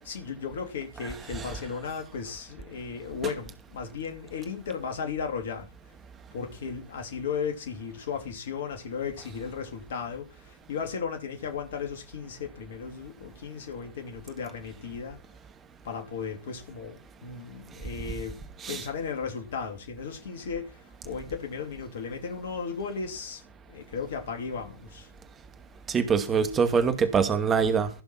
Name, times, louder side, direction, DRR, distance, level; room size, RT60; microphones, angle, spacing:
voice 1, 0.0-5.7 6.3-15.2 15.8-18.4 18.7-23.4 23.7-25.1, left 6 dB, 60° left, 2.8 m, -35 dB
voice 2, 1.0-1.6 3.2-3.3 18.6-18.9 25.9-27.9, right 6 dB, 25° right, 2.2 m, -25 dB
16.5 x 6.7 x 5.9 m
figure-of-eight pair, 90°, 0 cm